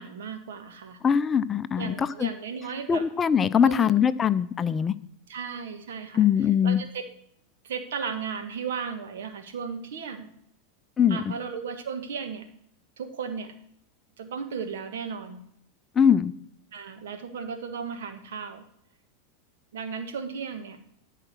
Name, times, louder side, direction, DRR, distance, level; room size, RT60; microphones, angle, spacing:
voice 1, 0.0-1.0 1.8-3.0 3.6-3.9 5.3-7.0 7.6-10.3 11.1-12.5 13.0-13.5 14.2-15.4 16.7-18.6 19.7-20.8, right 6 dB, 70° right, 7 dB, 1.5 m, -35 dB
voice 2, 1.0-2.3 2.9-4.9 6.1-6.8 11.0-11.3 16.0-16.3, left 8 dB, 25° left, 14 dB, 0.5 m, -22 dB
13.0 x 5.0 x 6.1 m, 0.71 s
hypercardioid pair, 95°, 0 cm